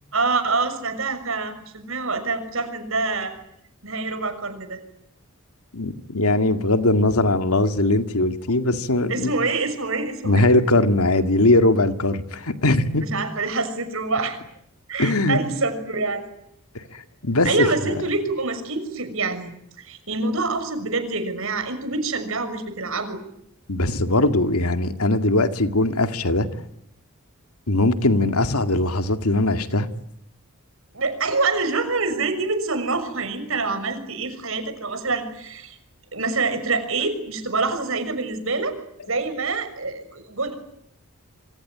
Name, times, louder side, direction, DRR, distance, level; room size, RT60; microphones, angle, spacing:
voice 1, 0.1-3.3 3.8-4.8 9.1-10.5 13.0-14.4 14.9-16.3 17.4-19.5 19.8-23.2 30.9-35.8 36.1-38.7 39.1-40.6, right 3 dB, 65° right, 9 dB, 6.3 m, -26 dB
voice 2, 5.7-9.3 10.2-13.1 15.0-15.4 16.9-17.5 23.7-26.5 27.7-29.9, left 2 dB, 80° left, 8 dB, 2.2 m, -20 dB
27.0 x 25.5 x 8.8 m, 0.76 s
head